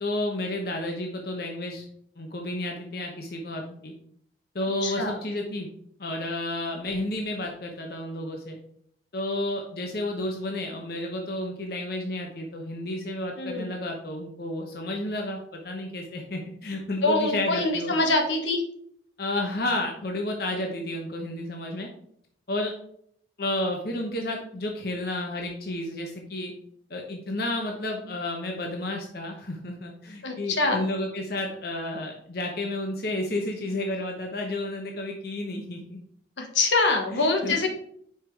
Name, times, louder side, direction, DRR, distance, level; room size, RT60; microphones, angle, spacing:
voice 1, 0.0-1.8 2.2-3.9 4.5-5.7 6.0-8.6 9.1-17.9 19.2-21.9 22.5-22.7 23.4-26.5 26.9-36.0 37.1-37.7, left 1 dB, 55° left, 1 dB, 0.9 m, -31 dB
voice 2, 4.8-5.2 13.4-13.7 17.0-18.6 30.2-30.8 36.4-37.7, left 3 dB, 85° left, 3 dB, 1.3 m, -24 dB
5.8 x 4.8 x 4.6 m, 0.66 s
head